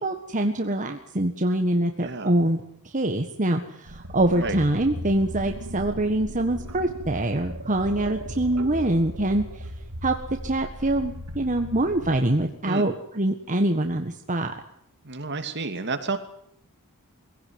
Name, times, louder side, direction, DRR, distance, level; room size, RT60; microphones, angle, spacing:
voice 1, 0.0-9.6 10.0-10.1 10.4-14.5, right 1 dB, 35° right, 4 dB, 1.6 m, -24 dB
voice 2, 2.0-2.3 4.3-4.6 12.7-12.9 15.0-16.2, right 3 dB, 55° right, 7 dB, 2.8 m, -30 dB
sound 1, 3.9-12.1, right 1 dB, 85° right, 2.5 m, -37 dB
23.5 x 17.0 x 9.6 m, 0.70 s
head